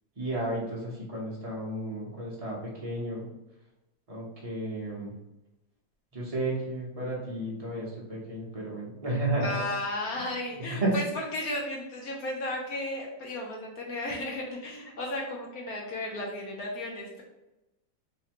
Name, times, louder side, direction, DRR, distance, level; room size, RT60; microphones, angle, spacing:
voice 1, 0.2-3.3 4.1-5.1 6.1-9.7 10.6-10.9, right 1 dB, 35° right, -5 dB, 0.5 m, -32 dB
voice 2, 9.4-17.2, left 1 dB, 65° left, -1 dB, 1.0 m, -34 dB
4.0 x 2.7 x 2.9 m, 0.97 s
omnidirectional pair, 2.0 m